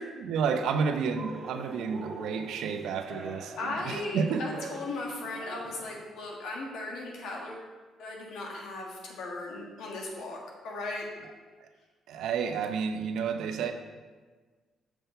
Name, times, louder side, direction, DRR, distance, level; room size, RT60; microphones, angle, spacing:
voice 1, 0.0-4.5 11.2-11.3 11.6-11.7 12.1-13.7, right 6 dB, 80° right, 7 dB, 0.6 m, -31 dB
Cheering, 1.1-6.0, right 2 dB, 55° right, 1.4 m, -44 dB
voice 2, 3.6-7.7 8.0-10.4 10.6-11.0, left 2 dB, 80° left, -1 dB, 1.6 m, -37 dB
6.8 x 6.2 x 4.4 m, 1.4 s
cardioid pair, 90°, 0 cm